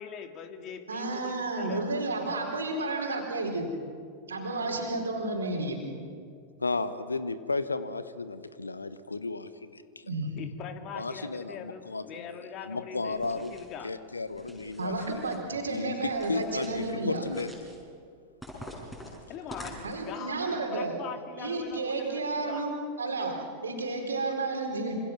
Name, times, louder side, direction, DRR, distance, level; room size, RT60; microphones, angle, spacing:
voice 1, 0.0-1.8 10.4-13.9 19.3-22.6, left 7 dB, 35° left, 6 dB, 2.4 m, -42 dB
voice 2, 0.9-3.7 4.3-5.8 10.1-10.4 14.8-17.2 19.8-21.0 21.4-25.0, right 2 dB, 70° right, 2 dB, 4.5 m, -31 dB
voice 3, 6.6-10.1 10.9-13.6 13.8-15.2 15.7-17.5, left 3 dB, 80° left, 14 dB, 1.1 m, -34 dB
sound 1, 13.1-13.8 14.3-15.4 16.1-16.9 17.2-17.8 18.4-20.2, equal, 5° left, 6.5 m, -46 dB
26.5 x 26.5 x 6.1 m, 2.3 s
figure-of-eight pair, 90°, 0 cm